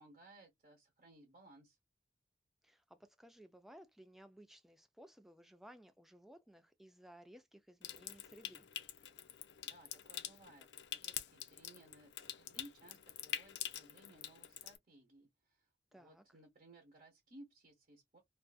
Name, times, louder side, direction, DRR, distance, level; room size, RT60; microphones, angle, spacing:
voice 1, 0.0-1.8 9.6-18.2, right 1 dB, 45° right, 0.9 m, -61 dB
voice 2, 2.6-8.7 15.9-16.4, equal, ahead, 0.4 m, -59 dB
Water tap faucet / Sink (filling or washing) / Trickle dribble, 7.8-14.8, left 11 dB, 70° left, 0.4 m, -46 dB
2.5 x 2.4 x 2.3 m
head